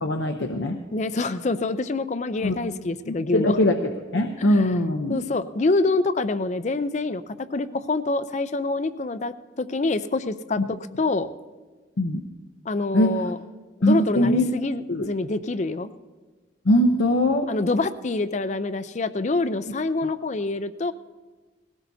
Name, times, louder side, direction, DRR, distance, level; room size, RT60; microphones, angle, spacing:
voice 1, 0.0-0.8 2.4-2.6 3.1-3.7 4.1-5.2 12.0-12.2 12.9-13.1 13.8-14.5 14.9-15.1 16.6-17.5 20.0-20.1, left 1 dB, 75° left, 4 dB, 0.7 m, -21 dB
voice 2, 0.9-3.6 4.4-4.7 5.1-11.3 12.7-13.4 13.8-15.9 17.5-20.9, left 3 dB, 40° left, 13 dB, 0.5 m, -26 dB
20.0 x 17.0 x 2.7 m, 1.3 s
head